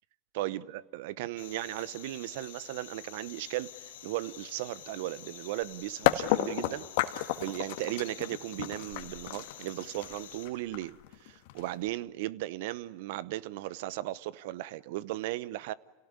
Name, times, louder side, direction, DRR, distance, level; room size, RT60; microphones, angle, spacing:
voice 1, 0.3-6.9 7.1-15.7, right 16 dB, 70° right, 0.8 m, -36 dB
sound 1, 1.4-10.5, left 10 dB, 85° left, 4.5 m, -49 dB
sound 2, 6.1-11.9, left 14 dB, 70° left, 1.5 m, -31 dB
29.5 x 17.5 x 9.6 m
supercardioid pair, 115°, 0 cm